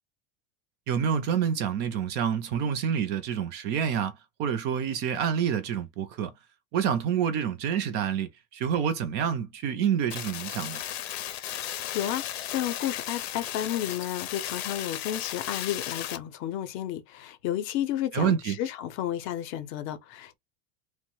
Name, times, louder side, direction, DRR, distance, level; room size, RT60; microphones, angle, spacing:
voice 1, 0.9-6.3 6.7-10.8 18.1-18.6, right 8 dB, 35° right, 0.4 m, -28 dB
sound 1, 10.1-16.2, left 12 dB, 90° left, 0.7 m, -35 dB
voice 2, 11.7-20.4, left 11 dB, 45° left, 0.6 m, -32 dB
3.0 x 2.1 x 3.0 m
supercardioid pair, 145°, 30 cm